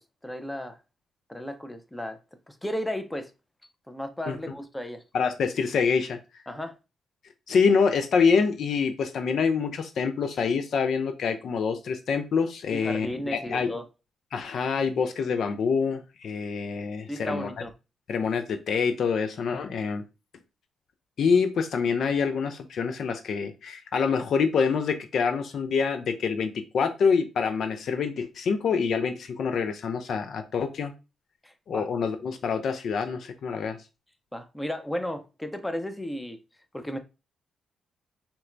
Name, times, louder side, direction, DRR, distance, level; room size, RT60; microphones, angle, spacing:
voice 1, 0.2-0.8 1.3-2.2 2.5-3.3 3.9-5.0 6.5-6.8 12.7-13.8 17.1-17.7 31.4-31.9 34.3-36.4 36.7-37.0, equal, 10° left, 0.6 m, -34 dB
voice 2, 5.1-6.2 7.5-13.7 14.3-17.5 18.1-20.0 21.2-30.9 31.7-33.8, left 5 dB, 70° left, 0.4 m, -26 dB
4.0 x 2.2 x 2.5 m
supercardioid pair, 55°, 0 cm